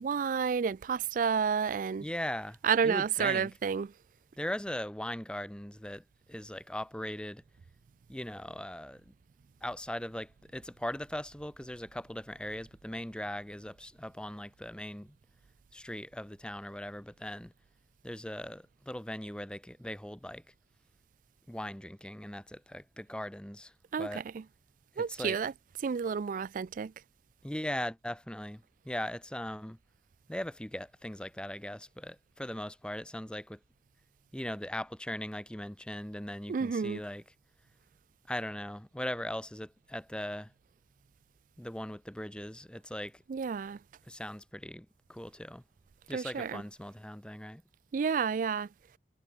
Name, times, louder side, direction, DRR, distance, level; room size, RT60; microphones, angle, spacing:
voice 1, 0.0-2.1 2.6-3.9 23.9-24.4 25.0-25.5 25.8-26.9 36.5-37.0 43.3-43.8 46.1-46.6 47.9-48.7, right 6 dB, 50° right, 0.3 m, -30 dB
voice 2, 2.0-2.6 2.8-3.5 4.4-6.0 6.3-7.4 8.1-9.1 9.6-15.2 15.7-17.5 18.0-20.4 21.5-23.7 24.0-24.2 24.9-25.4 27.4-29.8 30.3-33.6 34.3-37.2 38.3-40.5 41.6-43.2 44.1-45.6 46.1-47.6, left 1 dB, 5° left, 0.9 m, -39 dB
head